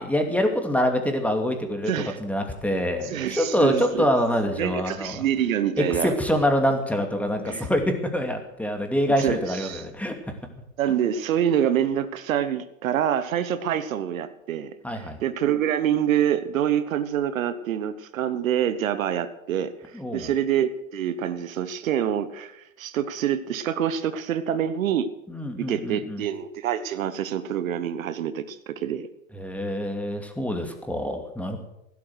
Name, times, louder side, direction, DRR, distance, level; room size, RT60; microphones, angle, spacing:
voice 1, 0.0-1.9 2.2-5.2 5.8-10.2 14.8-15.2 19.9-20.3 25.3-26.2 29.3-31.6, equal, 5° left, 4 dB, 2.6 m, -25 dB
voice 2, 1.9-2.2 3.0-4.1 4.6-6.1 7.5-7.7 9.2-9.8 10.8-25.1 25.6-29.1, right 10 dB, 75° right, 12 dB, 1.2 m, -26 dB
16.0 x 11.5 x 6.4 m, 0.84 s
hypercardioid pair, 100°, 41 cm